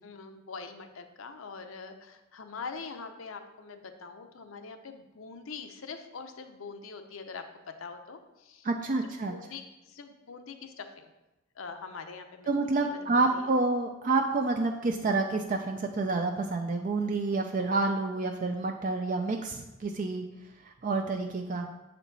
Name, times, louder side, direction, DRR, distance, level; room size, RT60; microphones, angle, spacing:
voice 1, 0.0-8.7 9.3-11.1 11.6-12.5 12.8-13.5, left 5 dB, 80° left, 7 dB, 0.6 m, -43 dB
voice 2, 8.6-9.3 12.5-20.2 20.6-21.7, right 3 dB, 40° right, 4 dB, 0.4 m, -28 dB
7.1 x 4.4 x 4.0 m, 1.0 s
head